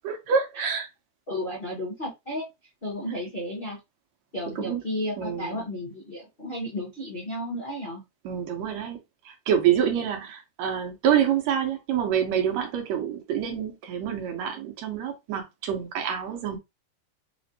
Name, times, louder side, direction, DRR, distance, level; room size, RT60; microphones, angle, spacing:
voice 1, 0.0-0.9 4.6-4.8 5.2-5.7 8.3-9.0 9.3-16.6, right 8 dB, 75° right, 2.0 m, -27 dB
voice 2, 1.3-2.5 2.8-3.8 4.3-8.0, left 1 dB, 50° left, 0.6 m, -33 dB
5.0 x 2.5 x 2.7 m
omnidirectional pair, 3.3 m